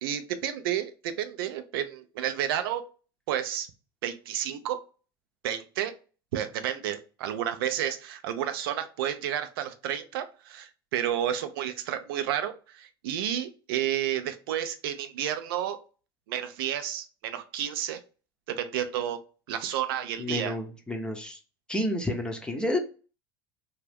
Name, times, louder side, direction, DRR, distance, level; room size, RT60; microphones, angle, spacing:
voice 1, 0.0-2.8 3.3-3.7 4.0-4.8 5.4-5.9 6.3-15.8 16.3-18.0 18.5-19.2 19.5-20.5, right 10 dB, 70° right, 10 dB, 0.5 m, -31 dB
voice 2, 20.2-21.4 21.7-22.8, left 1 dB, 5° left, 3 dB, 0.7 m, -30 dB
2.7 x 2.3 x 3.4 m, 0.35 s
hypercardioid pair, 85°, 13 cm